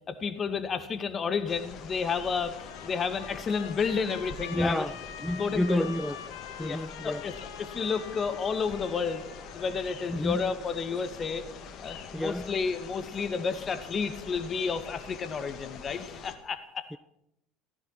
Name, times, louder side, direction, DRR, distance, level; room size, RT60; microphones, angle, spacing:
voice 1, 0.1-4.9 5.4-5.9 6.6-9.3 9.5-11.4 11.8-16.9, left 5 dB, 35° left, 2.1 m, -31 dB
sound 1, 1.5-16.4, left 6 dB, 50° left, 2.3 m, -45 dB
Trumpet, 2.6-10.2, left 8 dB, 70° left, 2.0 m, -45 dB
voice 2, 4.5-6.2 6.6-7.2 10.1-10.5 12.1-12.6 16.9-17.0, left 1 dB, 5° left, 0.5 m, -30 dB
16.0 x 15.0 x 6.0 m
hypercardioid pair, 75°, 0 cm